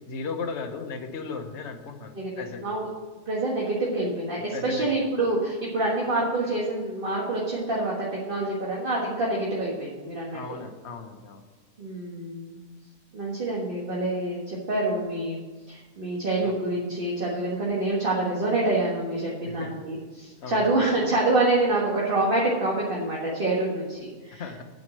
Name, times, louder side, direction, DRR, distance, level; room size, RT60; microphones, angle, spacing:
voice 1, 0.0-2.6 4.5-5.0 10.3-11.4 16.4-16.5 19.5-19.7 20.4-20.7 24.4-24.6, left 4 dB, 50° left, 5 dB, 1.2 m, -36 dB
voice 2, 2.1-2.9 3.2-10.6 11.8-12.6 13.1-15.4 15.7-24.6, right 2 dB, 35° right, -4 dB, 1.7 m, -27 dB
9.2 x 5.2 x 7.8 m, 1.4 s
omnidirectional pair, 1.6 m